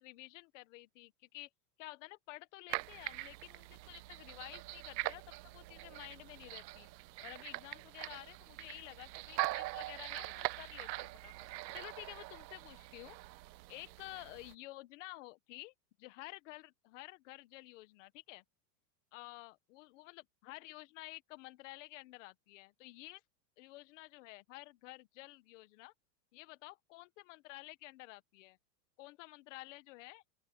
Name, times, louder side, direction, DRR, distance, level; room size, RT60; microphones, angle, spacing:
voice 1, 0.0-1.5 1.8-5.2 5.5-6.9 7.2-11.3 11.7-13.2 13.7-18.4 19.1-23.2 23.6-25.9 26.3-28.6 29.0-30.2, left 20 dB, 45° left, 1.5 m, -51 dB
sound 1, 2.7-14.5, right 19 dB, 80° right, 0.6 m, -43 dB
open air
supercardioid pair, 165°, 50 cm